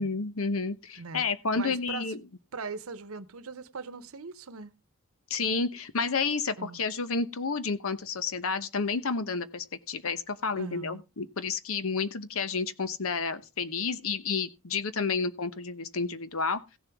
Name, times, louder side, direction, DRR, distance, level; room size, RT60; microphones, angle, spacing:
voice 1, 0.0-2.2 5.3-16.6, left 4 dB, 75° left, 0.9 m, -30 dB
voice 2, 1.5-2.1 2.5-4.7 6.6-6.8 10.5-11.0, right 4 dB, 80° right, 0.9 m, -40 dB
16.0 x 6.9 x 3.5 m
head